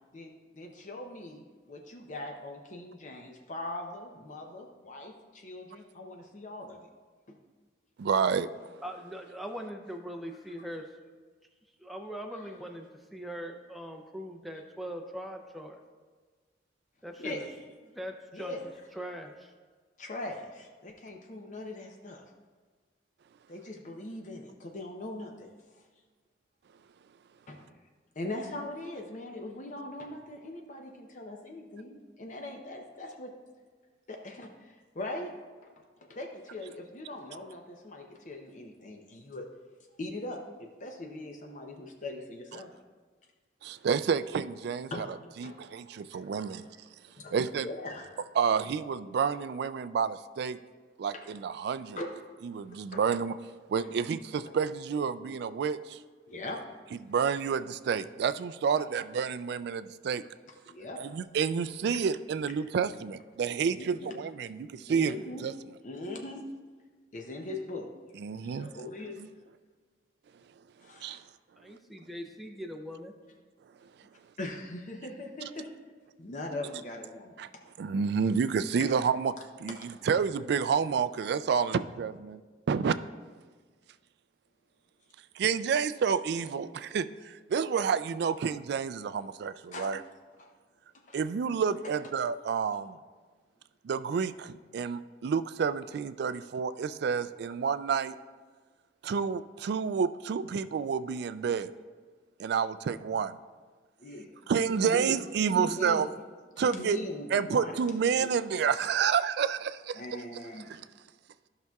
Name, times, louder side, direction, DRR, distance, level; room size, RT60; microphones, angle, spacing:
voice 1, 0.1-6.9 7.3-7.4 10.6-10.7 12.3-12.4 17.2-17.6 18.3-18.6 20.0-22.2 23.5-25.8 27.5-27.8 28.2-33.3 34.1-35.3 35.6-39.5 39.9-42.7 44.9-45.8 46.1-46.7 47.2-47.3 47.6-48.2 51.1-51.2 52.0-52.1 52.7-53.0 53.8-53.9 54.4-54.5 56.3-56.6 58.7-58.9 60.7-61.0 63.7-64.1 64.9-65.4 65.8-66.4 67.1-67.9 68.5-69.2 70.8-71.2 74.4-75.7 76.2-77.3 79.7-79.8 86.4-86.5 89.7-89.9 90.4-90.5 91.1-91.2 91.8-91.9 104.0-104.4 104.8-105.2 105.5-106.0 106.6-108.4 109.9-110.9, left 2 dB, 45° left, 2 dB, 0.6 m, -41 dB
voice 2, 8.0-8.5 43.6-45.1 45.4-46.6 47.3-47.7 48.4-50.6 51.0-52.0 52.4-53.4 53.7-56.0 57.0-60.2 61.0-65.5 68.2-68.7 71.0-71.2 77.4-77.5 77.8-79.3 79.6-82.4 82.7-82.9 85.4-90.0 91.1-93.0 93.8-98.1 99.0-101.7 102.4-103.4 104.5-106.1 106.6-107.0 107.3-110.0 110.7-110.8, right 6 dB, 65° right, 14 dB, 0.3 m, -29 dB
voice 3, 8.8-11.2 11.8-15.8 17.0-17.5 17.9-18.5 19.0-19.5 71.6-73.1, equal, ahead, 3 dB, 0.5 m, -41 dB
13.5 x 5.8 x 2.3 m, 1.4 s
head